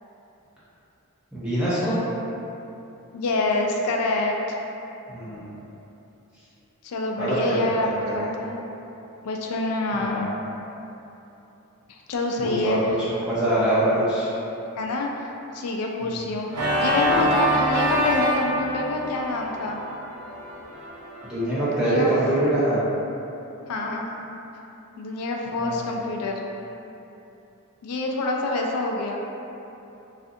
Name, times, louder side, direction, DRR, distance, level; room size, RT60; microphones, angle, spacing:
voice 1, 1.3-2.0 5.1-5.6 7.2-8.3 10.0-10.2 12.4-12.8 13.1-14.3 16.0-16.1 21.2-22.8 25.6-25.9, right 1 dB, 5° right, -12 dB, 0.4 m, -24 dB
voice 2, 3.1-4.6 6.8-8.6 9.2-10.3 11.9-12.8 14.8-19.8 21.7-22.1 23.7-24.1 25.0-26.4 27.8-29.2, left 2 dB, 80° left, 0 dB, 0.3 m, -27 dB
Organ, 16.5-21.3, equal, 90° right, 0.6 m, -25 dB
2.5 x 2.4 x 2.6 m, 3.0 s
head